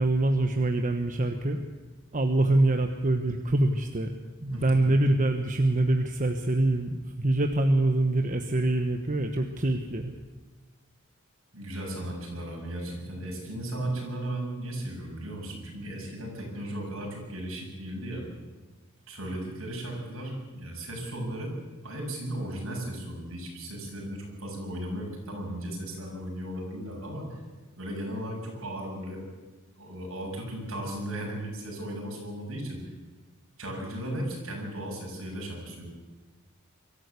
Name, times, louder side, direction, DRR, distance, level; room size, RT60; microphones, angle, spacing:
voice 1, 0.0-1.6 2.1-4.1 4.4-10.1, right 2 dB, 40° right, 5 dB, 1.2 m, -25 dB
voice 2, 4.5-5.0 11.5-18.2 19.1-21.5 21.8-27.4 27.8-29.2 29.8-32.9 33.6-35.8, right 1 dB, 70° right, -1 dB, 7.8 m, -36 dB
23.5 x 14.0 x 8.4 m, 1.3 s
head